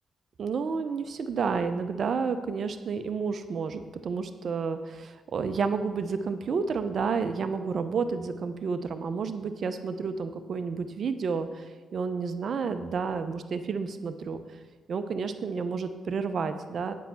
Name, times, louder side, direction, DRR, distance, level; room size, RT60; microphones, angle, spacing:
voice 1, 0.4-14.4 14.9-16.9, right 5 dB, 60° right, 9 dB, 0.8 m, -30 dB
8.4 x 5.7 x 7.0 m, 1.3 s
cardioid pair, 65°, 0 cm